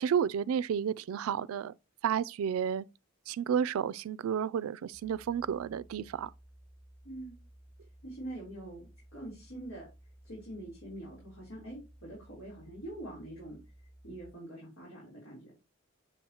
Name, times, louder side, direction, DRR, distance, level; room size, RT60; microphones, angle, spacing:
voice 1, 0.0-1.7 2.0-2.9 3.3-6.3, right 8 dB, 85° right, 0.3 m, -31 dB
sound 1, 4.9-14.3, right 1 dB, 20° left, 3.8 m, -57 dB
voice 2, 7.0-7.4 8.0-9.9 10.2-13.6 14.0-15.5, right 1 dB, 90° left, 3.5 m, -44 dB
7.0 x 7.0 x 2.9 m
head